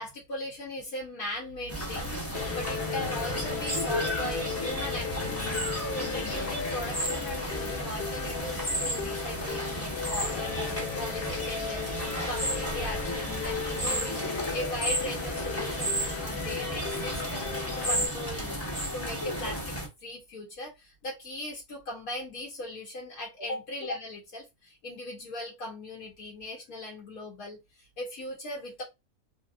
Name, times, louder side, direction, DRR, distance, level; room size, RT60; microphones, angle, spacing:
voice 1, 0.0-5.5 5.9-18.6 18.9-19.7 20.0-28.8, left 1 dB, 80° left, 1.3 m, -39 dB
sound 1, 1.7-19.9, equal, 10° left, 0.9 m, -33 dB
sound 2, 2.3-18.1, left 7 dB, 65° left, 0.5 m, -36 dB
2.9 x 2.8 x 2.3 m
omnidirectional pair, 1.5 m